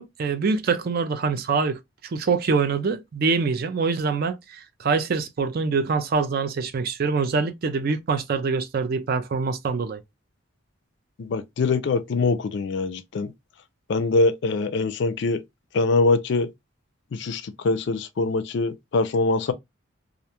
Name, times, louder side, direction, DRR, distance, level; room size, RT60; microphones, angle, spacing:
voice 1, 0.0-10.0, right 4 dB, 50° right, 0.4 m, -25 dB
voice 2, 11.2-13.3 13.9-15.4 15.7-16.5 17.1-19.5, left 3 dB, 60° left, 0.4 m, -23 dB
2.4 x 2.2 x 2.8 m
head